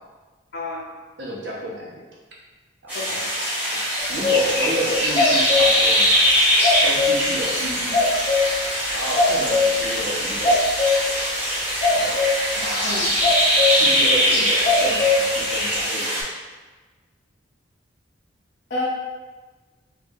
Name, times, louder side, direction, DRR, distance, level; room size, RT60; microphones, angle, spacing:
voice 1, 0.5-0.9 2.9-3.3 12.8-13.1 18.7-18.8, left 2 dB, 55° left, -8 dB, 0.6 m, -29 dB
voice 2, 1.2-1.9 2.8-2.9 3.7-3.8 4.1-6.3 6.8-8.1 8.9-10.6 11.9-12.2 12.5-13.1 13.7-16.2, equal, 65° right, -4 dB, 0.9 m, -30 dB
sound 1, 2.9-16.2, equal, 10° right, 1.0 m, -22 dB
sound 2, 4.0-7.2 7.9-8.6 9.1-9.7 10.4-11.0 11.8-12.4 13.2-13.8 14.0-15.8, left 3 dB, 30° left, 1.0 m, -21 dB
4.4 x 2.5 x 2.4 m, 1.3 s
head